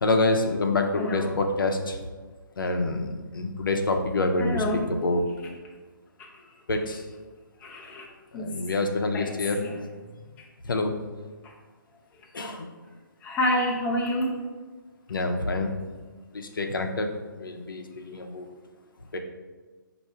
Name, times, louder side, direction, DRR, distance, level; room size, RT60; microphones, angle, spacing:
voice 1, 0.0-2.0 2.6-5.3 6.7-7.0 8.3-9.7 10.6-10.9 12.3-12.7 15.1-15.7 16.3-18.5 19.1-19.2, left 2 dB, 70° left, 4 dB, 0.6 m, -27 dB
voice 2, 1.0-1.3 4.4-4.9 7.6-8.1 8.3-8.5 9.1-9.3 9.6-9.8 10.4-10.5 11.4-11.5 13.2-14.3, left 1 dB, 10° left, -2 dB, 0.5 m, -28 dB
4.4 x 2.6 x 4.5 m, 1.3 s
figure-of-eight pair, 140°, 11 cm